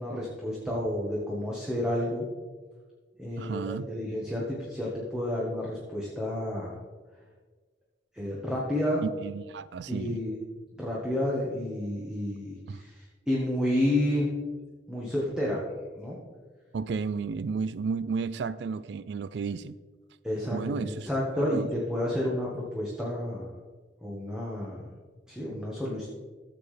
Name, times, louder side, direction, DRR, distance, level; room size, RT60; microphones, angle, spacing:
voice 1, 0.0-2.3 3.2-6.8 8.1-9.0 9.9-10.4 10.8-14.3 14.9-15.6 15.9-16.2 20.2-23.5 24.0-24.9 25.3-26.1, left 1 dB, 5° right, -5 dB, 1.4 m, -30 dB
voice 2, 3.4-3.9 9.0-10.2 12.7-12.8 16.7-19.8 20.5-21.7, right 5 dB, 70° right, 16 dB, 0.3 m, -33 dB
14.0 x 7.6 x 3.3 m, 1.4 s
head